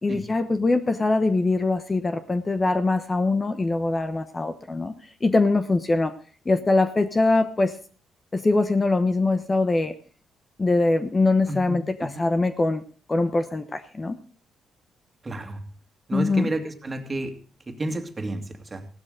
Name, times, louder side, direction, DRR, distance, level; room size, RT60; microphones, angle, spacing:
voice 1, 0.0-4.9 5.2-6.1 6.5-7.8 8.3-9.9 10.6-12.8 13.1-14.2 16.1-16.5, left 2 dB, 25° left, 9 dB, 1.0 m, -22 dB
voice 2, 15.2-15.7 16.1-18.9, right 2 dB, 25° right, 5 dB, 2.2 m, -31 dB
16.0 x 12.0 x 3.8 m, 0.41 s
cardioid pair, 90°, 0 cm